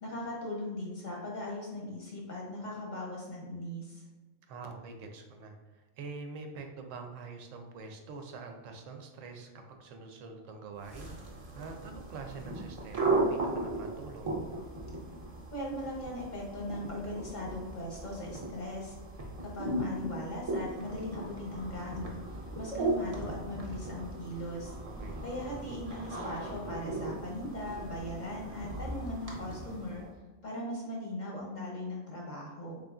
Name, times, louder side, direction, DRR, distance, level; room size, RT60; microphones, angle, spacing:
voice 1, 0.0-4.0 15.5-19.0 19.4-24.8 25.2-30.1 30.4-32.8, left 1 dB, 45° left, -2 dB, 0.7 m, -39 dB
voice 2, 4.5-14.4 24.8-25.2, right 4 dB, 85° right, 4 dB, 1.0 m, -45 dB
sound 1, 10.8-30.1, right 2 dB, 40° right, 0.5 m, -37 dB
3.7 x 3.6 x 2.3 m, 1.2 s
omnidirectional pair, 1.3 m